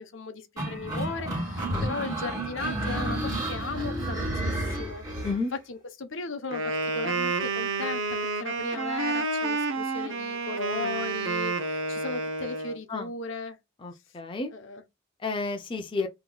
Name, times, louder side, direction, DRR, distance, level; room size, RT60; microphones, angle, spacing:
voice 1, 0.0-5.0 5.7-13.6 14.5-14.8, left 4 dB, 70° left, 0.7 m, -37 dB
sound 1, 0.6-5.4, right 1 dB, 20° right, 1.7 m, -31 dB
Wind instrument woodwind instrument, 6.5-12.8, right 3 dB, 70° right, 0.7 m, -29 dB
voice 2, 13.8-14.5 15.2-16.1, left 3 dB, 25° left, 0.4 m, -31 dB
4.0 x 2.9 x 2.2 m
head